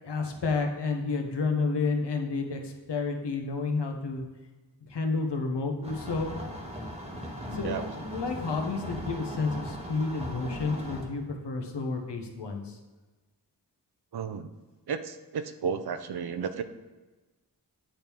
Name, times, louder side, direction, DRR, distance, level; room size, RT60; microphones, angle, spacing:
voice 1, 0.0-4.3 4.8-6.3 7.5-12.8, left 4 dB, 75° left, 3 dB, 1.0 m, -30 dB
sound 1, 5.8-11.1, equal, 15° right, 1.4 m, -38 dB
voice 2, 14.1-14.5 14.9-16.6, right 6 dB, 65° right, 10 dB, 0.6 m, -33 dB
8.8 x 3.6 x 4.4 m, 1.2 s
wide cardioid pair, 70°, 42 cm